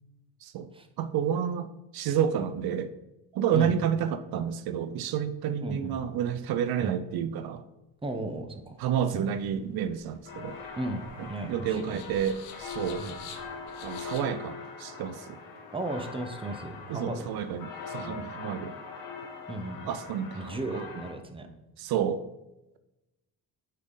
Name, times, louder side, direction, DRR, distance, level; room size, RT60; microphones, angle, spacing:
voice 1, 1.0-2.9 3.3-7.6 8.8-10.6 11.2-13.0 13.8-15.4 16.9-18.8 19.9-20.9 21.8-22.2, right 8 dB, 75° right, 11 dB, 0.6 m, -30 dB
voice 2, 5.6-6.0 6.8-6.9 8.0-8.8 9.1-9.3 10.8-12.0 13.0-13.2 15.7-17.3 17.9-18.2 19.5-19.9 20.3-21.5, right 2 dB, 15° right, 5 dB, 0.9 m, -35 dB
sound 1, 8.9-14.2, left 7 dB, 90° left, 1.1 m, -49 dB
sound 2, 10.2-21.1, left 5 dB, 70° left, 1.6 m, -42 dB
9.4 x 4.1 x 3.9 m, 0.97 s
cardioid pair, 100°, 37 cm